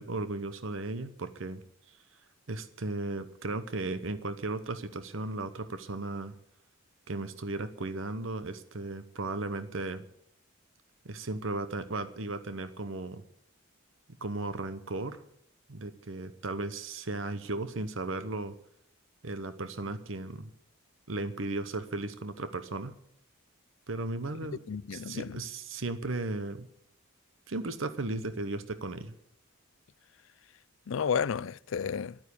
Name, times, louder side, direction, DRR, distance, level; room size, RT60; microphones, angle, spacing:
voice 1, 0.0-1.6 2.5-6.3 7.1-10.1 11.0-13.2 14.2-15.2 15.7-18.6 19.2-20.5 21.1-22.9 23.9-24.6 24.9-26.7 27.5-29.1, right 2 dB, 70° right, 1.0 m, -35 dB
voice 2, 24.7-25.4 30.9-32.2, left 6 dB, 70° left, 0.4 m, -32 dB
12.0 x 9.4 x 8.6 m
head